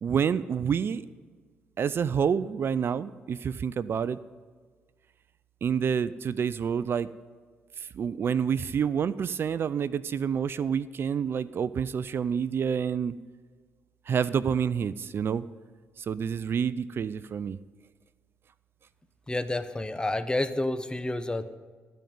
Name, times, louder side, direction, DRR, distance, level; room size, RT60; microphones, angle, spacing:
voice 1, 0.0-1.1 1.8-4.2 5.6-7.1 7.8-13.2 14.1-15.4 16.0-17.6, right 7 dB, 50° right, 17 dB, 0.4 m, -28 dB
voice 2, 19.3-21.6, left 2 dB, 15° left, 12 dB, 0.9 m, -29 dB
14.5 x 5.2 x 9.3 m, 1.5 s
supercardioid pair, 60°, 5 cm